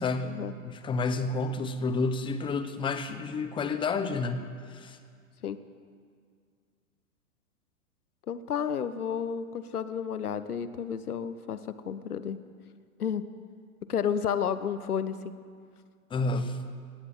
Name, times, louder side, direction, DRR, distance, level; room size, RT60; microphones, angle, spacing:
voice 1, 0.0-0.3 0.6-5.0 16.1-16.6, left 3 dB, 10° left, 10 dB, 0.8 m, -30 dB
voice 2, 8.3-12.4 13.0-13.3 13.9-15.2, left 8 dB, 85° left, 12 dB, 1.0 m, -31 dB
17.0 x 9.8 x 7.7 m, 2.1 s
hypercardioid pair, 110°, 44 cm